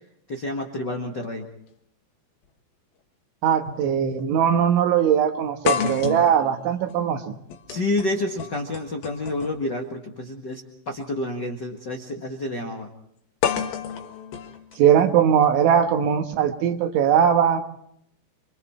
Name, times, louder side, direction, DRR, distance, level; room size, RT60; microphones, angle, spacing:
voice 1, 0.3-1.5 7.7-12.9, left 2 dB, 85° left, 1 dB, 0.9 m, -29 dB
sound 1, 2.4-2.5 3.7-3.8 4.2-4.3 5.7-9.7 10.9-11.0 13.4-15.4, left 8 dB, 65° left, 3.0 m, -30 dB
voice 2, 3.4-7.3 14.8-17.6, right 8 dB, 85° right, 6 dB, 3.8 m, -20 dB
28.0 x 24.0 x 4.4 m, 0.71 s
omnidirectional pair, 5.2 m